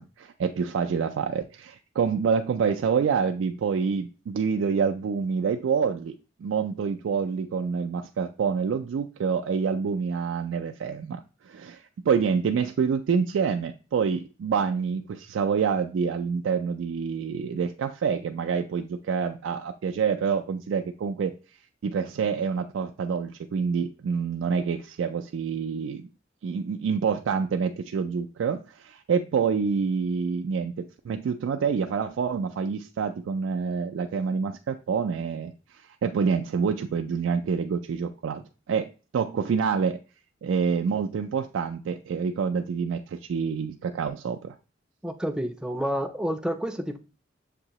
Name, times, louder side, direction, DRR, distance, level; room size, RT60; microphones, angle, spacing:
voice 1, 0.0-21.3 21.8-26.0 26.4-38.4 38.7-40.0 40.4-44.5, right 6 dB, 85° right, 0.3 m, -27 dB
voice 2, 45.0-47.0, equal, 5° right, 0.4 m, -29 dB
6.6 x 2.7 x 2.9 m
head